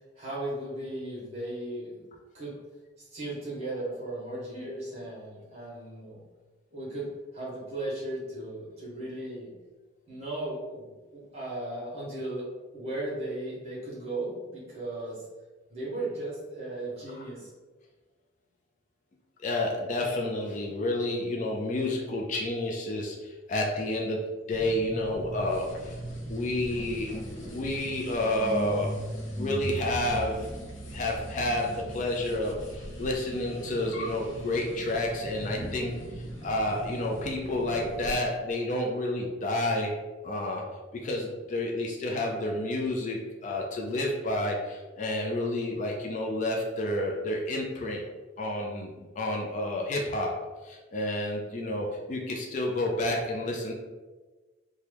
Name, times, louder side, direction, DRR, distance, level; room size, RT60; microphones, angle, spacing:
voice 1, 0.2-2.1 2.3-2.6 3.0-6.2 6.7-9.5 10.1-12.5 12.7-15.2 15.7-17.5, right 1 dB, 35° right, -7 dB, 1.2 m, -36 dB
voice 2, 19.4-26.0 26.3-28.9 29.4-30.5 30.9-39.9 40.2-40.7 40.9-48.0 48.4-53.7, left 1 dB, 40° left, 0 dB, 0.4 m, -30 dB
sound 1, 24.5-38.2, equal, 75° left, 0.7 m, -39 dB
2.9 x 2.2 x 3.3 m, 1.3 s
head